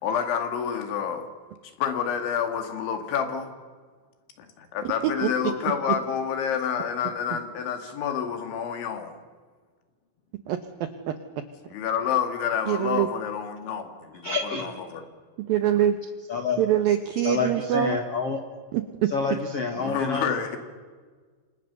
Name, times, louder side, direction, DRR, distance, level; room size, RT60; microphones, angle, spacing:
voice 1, 0.0-1.3 1.8-3.5 4.4-9.2 11.7-15.0 19.8-20.6, left 8 dB, 70° left, 7 dB, 4.5 m, -28 dB
voice 2, 5.0-5.5 10.5-11.2 12.7-13.1 15.5-16.0 16.6-18.0 18.7-19.1, right 11 dB, 75° right, 8 dB, 2.1 m, -24 dB
voice 3, 14.2-14.7 16.3-16.6 17.2-18.4 19.1-20.4, left 4 dB, 55° left, 4 dB, 1.7 m, -28 dB
29.0 x 25.5 x 6.9 m, 1.5 s
omnidirectional pair, 5.7 m